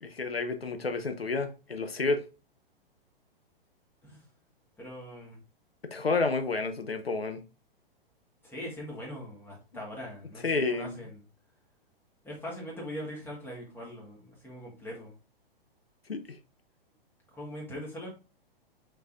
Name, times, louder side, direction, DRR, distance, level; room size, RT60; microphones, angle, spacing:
voice 1, 0.0-2.2 5.9-7.4 10.4-11.0 16.1-16.4, left 3 dB, 85° left, 8 dB, 0.6 m, -30 dB
voice 2, 4.8-5.4 8.4-11.2 12.2-15.1 17.3-18.1, equal, 5° left, -2 dB, 1.7 m, -41 dB
5.4 x 3.8 x 2.5 m, 0.31 s
figure-of-eight pair, 110°, 30 cm